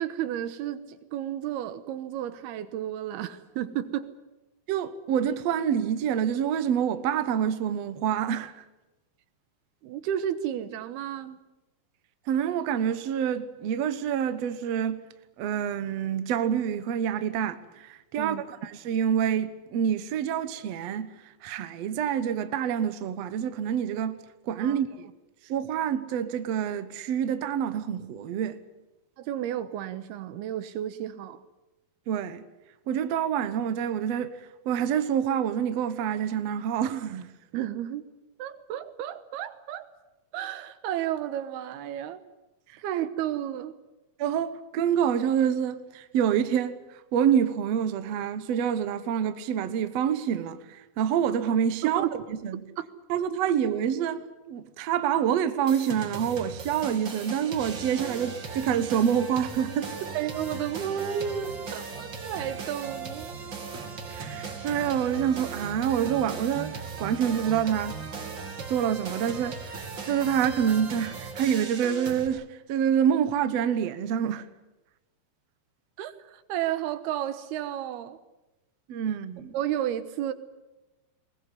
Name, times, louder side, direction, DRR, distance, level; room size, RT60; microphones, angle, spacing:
voice 1, 0.0-4.1 9.8-11.4 18.2-18.4 24.6-24.8 29.2-31.4 37.5-38.1 38.4-39.9 40.3-42.2 42.8-43.7 51.8-52.1 52.8-52.9 60.1-63.3 76.0-78.2 79.5-80.3, right 11 dB, 85° right, 3.2 m, -32 dB
voice 2, 4.7-8.6 12.3-15.1 15.4-21.1 21.4-25.1 25.5-28.6 32.1-32.4 32.9-34.3 34.7-37.3 44.2-46.8 47.1-52.6 53.1-60.1 64.1-68.0 68.7-74.5 78.9-79.5, right 8 dB, 60° right, 1.8 m, -27 dB
sound 1, 55.7-72.3, right 5 dB, 35° right, 2.6 m, -38 dB
21.5 x 19.5 x 9.9 m
omnidirectional pair, 4.4 m